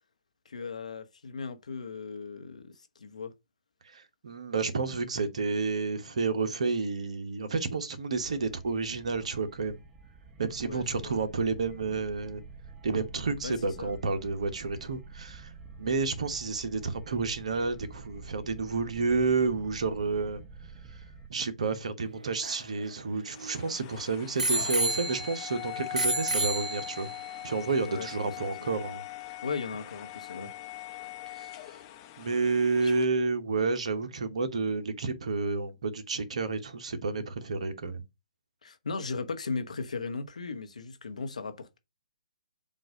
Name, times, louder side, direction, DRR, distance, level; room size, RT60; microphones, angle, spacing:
voice 1, 0.4-3.3 10.6-11.2 13.4-13.9 27.9-28.7 29.4-30.5 32.8-32.9 38.6-41.8, left 4 dB, 70° left, 1.0 m, -37 dB
voice 2, 3.9-9.8 10.4-12.4 12.8-15.5 15.8-20.4 21.3-27.1 27.4-29.0 31.3-31.5 32.2-38.0, right 4 dB, 60° right, 1.1 m, -30 dB
sound 1, 8.1-21.3, right 5 dB, 15° right, 1.2 m, -48 dB
Bicycle bell, 22.1-23.7 24.4-25.5 26.0-27.2 27.9-28.0, right 2 dB, 85° right, 0.3 m, -31 dB
sound 2, 23.3-33.0, left 14 dB, 30° left, 0.9 m, -42 dB
7.4 x 2.6 x 5.0 m
figure-of-eight pair, 130°, 4 cm